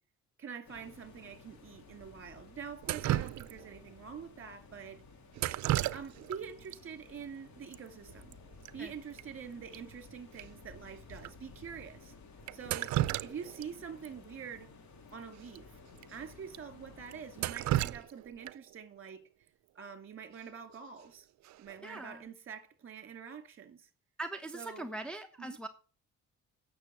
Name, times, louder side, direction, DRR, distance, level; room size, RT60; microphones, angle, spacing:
voice 1, 0.4-5.0 5.9-8.4 8.7-12.1 12.5-14.7 15.1-15.7 16.1-19.3 19.7-21.3 21.6-23.9 24.5-25.0 25.4-25.6, right 7 dB, 45° right, 2.5 m, -46 dB
sound 1, 0.6-17.6, left 4 dB, 65° left, 2.5 m, -55 dB
Drip, 2.8-3.8 5.3-6.4 6.7-6.8 7.7-7.8 8.1-8.3 8.6-8.7 9.2-9.3 9.7-9.8 10.4-10.5 11.2-11.3 12.5-13.7 14.0-14.1 15.5-15.6 16.0-16.1 16.5-16.6 17.1-18.7 20.7-21.0 21.4-21.8, right 14 dB, 65° right, 0.5 m, -33 dB
voice 2, 21.8-22.3 24.2-25.7, right 2 dB, 5° left, 0.9 m, -41 dB
8.9 x 6.7 x 6.7 m
cardioid pair, 90°, 30 cm